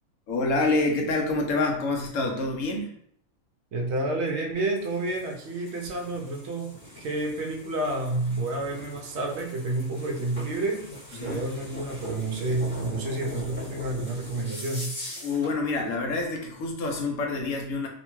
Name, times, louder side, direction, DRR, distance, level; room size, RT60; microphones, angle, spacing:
voice 1, 0.3-2.9 11.1-11.4 15.2-17.9, left 3 dB, 75° left, 2 dB, 0.9 m, -27 dB
voice 2, 3.7-14.9, right 2 dB, 65° right, 2 dB, 0.7 m, -30 dB
sound 1, 4.6-15.5, left 1 dB, 35° left, 1.2 m, -42 dB
2.7 x 2.2 x 3.0 m, 0.65 s
omnidirectional pair, 1.4 m